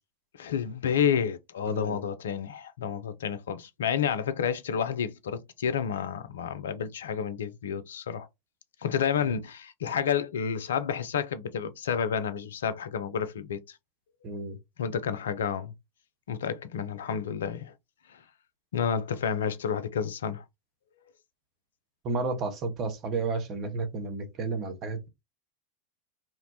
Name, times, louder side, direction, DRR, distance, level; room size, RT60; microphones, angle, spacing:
voice 1, 0.4-8.3 8.8-13.6 14.8-15.7 16.3-17.7 18.7-20.4, left 7 dB, 70° left, 0.3 m, -30 dB
voice 2, 1.7-2.0 14.2-14.6 22.0-25.1, right 3 dB, 35° right, 0.7 m, -32 dB
2.9 x 2.1 x 2.7 m
figure-of-eight pair, 85°, 0 cm